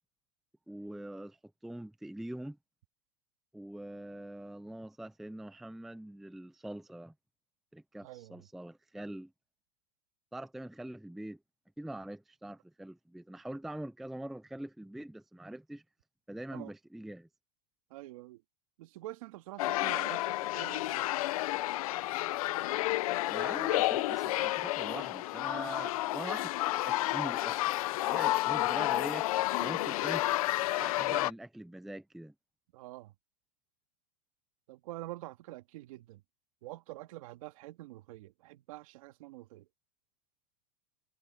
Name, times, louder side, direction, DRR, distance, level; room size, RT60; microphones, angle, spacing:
voice 1, 0.7-1.4 1.6-2.6 3.5-7.1 7.7-9.3 10.3-11.4 11.8-15.8 16.3-17.3 23.3-27.7 28.1-29.3 29.6-30.2 30.7-32.3, right 1 dB, ahead, 0.5 m, -43 dB
voice 2, 8.0-8.5 16.5-16.7 17.9-18.4 18.8-21.1 32.7-33.1 34.7-36.2 36.6-39.7, right 17 dB, 60° right, 2.2 m, -46 dB
sound 1, 19.6-31.3, left 17 dB, 60° left, 0.7 m, -31 dB
supercardioid pair, 160°, 20 cm